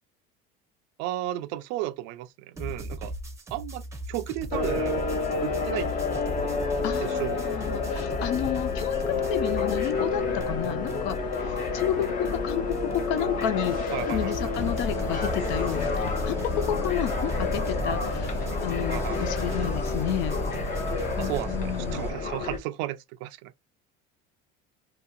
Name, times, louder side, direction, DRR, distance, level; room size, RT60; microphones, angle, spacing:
voice 1, 1.0-3.1 3.5-5.0 5.4-5.9 7.0-7.4 7.9-8.1 13.9-14.6 18.9-19.3 21.2-23.5, right 15 dB, 70° right, 0.4 m, -34 dB
sound 1, 2.6-10.1 10.4-21.4, right 1 dB, 15° right, 0.7 m, -39 dB
sound 2, 4.5-22.6, left 4 dB, 40° left, 1.0 m, -30 dB
voice 2, 6.8-15.9 16.2-18.3 18.6-20.4 20.9-22.0, left 11 dB, 65° left, 0.6 m, -31 dB
sound 3, 14.6-22.1, left 1 dB, 10° left, 1.1 m, -33 dB
2.8 x 2.8 x 2.2 m
cardioid pair, 135°, 21 cm